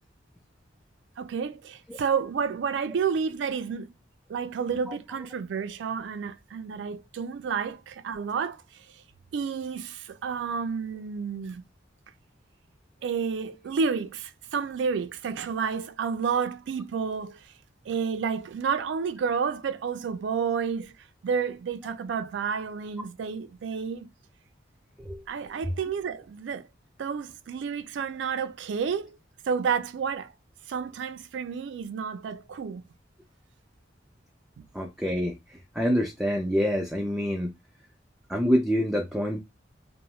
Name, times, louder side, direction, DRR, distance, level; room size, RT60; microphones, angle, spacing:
voice 1, 1.2-3.9 4.3-8.9 9.3-11.6 13.0-17.5 17.9-20.9 21.2-24.1 25.3-26.7 27.0-29.2 29.5-30.3 30.7-32.8 34.6-34.7, right 6 dB, 80° right, 0.3 m, -30 dB
voice 2, 34.7-37.5 38.3-39.4, equal, ahead, 0.4 m, -26 dB
2.7 x 2.0 x 3.0 m
head